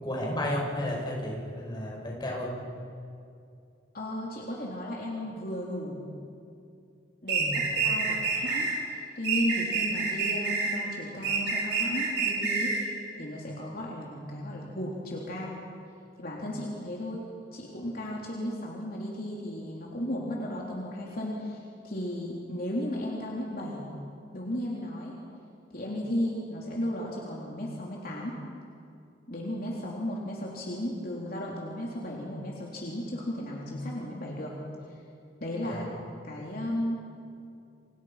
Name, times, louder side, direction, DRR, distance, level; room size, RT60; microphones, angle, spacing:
voice 1, 0.0-2.5 7.4-7.7 35.6-35.8, left 1 dB, 25° left, -1 dB, 5.9 m, -33 dB
voice 2, 3.9-6.0 7.2-12.9 13.2-15.6 16.2-17.2 17.5-23.8 24.3-25.1 25.7-28.4 29.3-34.6 35.4-35.9 36.2-37.0, left 1 dB, 55° left, -3 dB, 3.4 m, -35 dB
sound 1, 7.3-8.8 9.2-10.8 11.2-12.8, right 5 dB, 70° right, 6.6 m, -28 dB
30.0 x 25.5 x 5.8 m, 2.5 s
head